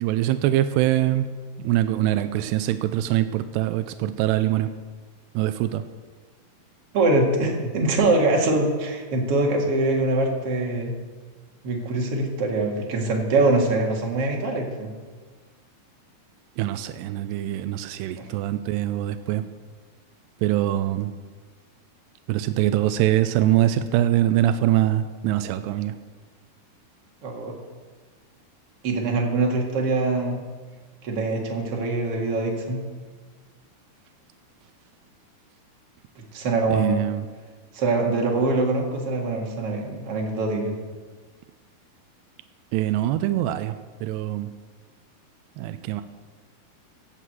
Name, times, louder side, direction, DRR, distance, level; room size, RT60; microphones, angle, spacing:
voice 1, 0.0-1.3 1.6-4.7 5.4-5.8 16.6-19.5 20.4-21.1 22.3-25.9 36.7-37.3 42.7-43.8 44.0-44.5 45.6-46.0, right 13 dB, 85° right, 10 dB, 2.7 m, -23 dB
voice 2, 6.9-10.9 11.6-14.9 18.2-18.3 27.2-27.5 28.8-30.4 31.0-32.8 36.3-37.0 37.7-40.7, right 2 dB, 45° right, 0 dB, 2.4 m, -23 dB
16.5 x 6.5 x 7.7 m, 1.4 s
omnidirectional pair, 4.8 m